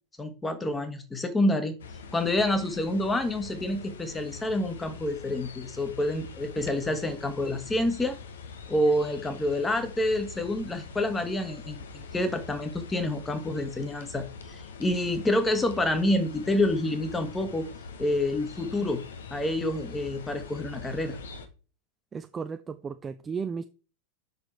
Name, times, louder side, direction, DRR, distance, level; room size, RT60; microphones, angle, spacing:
voice 1, 0.2-1.7 2.1-8.2 8.7-17.7 18.0-19.0 19.3-21.2, left 1 dB, 10° left, 8 dB, 1.5 m, -28 dB
sound 1, 1.8-21.5, left 4 dB, 65° left, 1.2 m, -44 dB
voice 2, 22.1-23.7, right 5 dB, 20° right, 10 dB, 0.5 m, -34 dB
6.9 x 6.1 x 4.4 m, 0.35 s
figure-of-eight pair, 90°, 0 cm